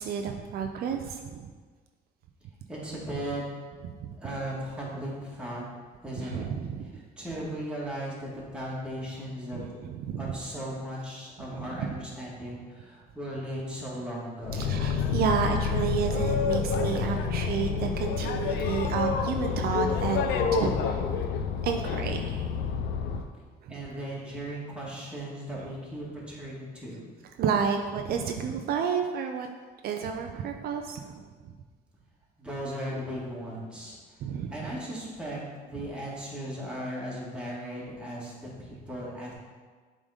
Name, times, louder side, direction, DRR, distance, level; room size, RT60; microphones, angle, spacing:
voice 1, 0.0-1.5 4.0-4.1 6.2-6.9 9.5-10.3 11.5-12.0 14.5-21.0 21.6-22.5 23.6-23.7 27.4-29.5 29.8-31.2 34.2-34.5, right 6 dB, 65° right, 4 dB, 0.5 m, -31 dB
voice 2, 2.7-3.4 4.2-5.6 6.0-6.5 6.9-9.8 10.2-14.6 23.7-27.0 32.4-39.3, equal, 5° right, -5 dB, 2.1 m, -37 dB
Boat Water vehicle, 14.4-23.3, left 6 dB, 85° left, 0.6 m, -28 dB
7.3 x 3.8 x 5.1 m, 1.5 s
cardioid pair, 110°, 17 cm